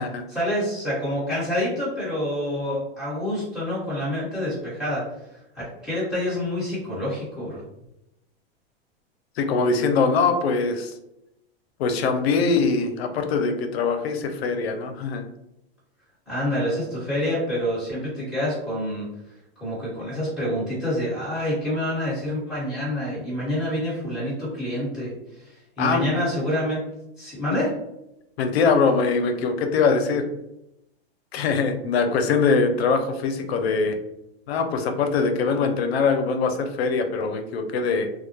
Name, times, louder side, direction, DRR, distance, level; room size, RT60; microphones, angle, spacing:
voice 1, 0.3-5.0 5.3-7.6 16.3-19.1 19.6-26.8 27.2-27.7, left 1 dB, ahead, -9 dB, 1.2 m, -27 dB
voice 2, 9.4-10.9 11.8-15.2 25.8-26.2 27.5-27.6 28.4-30.3 31.3-34.0 34.5-38.1, left 4 dB, 85° left, 6 dB, 0.5 m, -22 dB
2.2 x 2.0 x 2.9 m, 0.87 s
supercardioid pair, 140°, 30 cm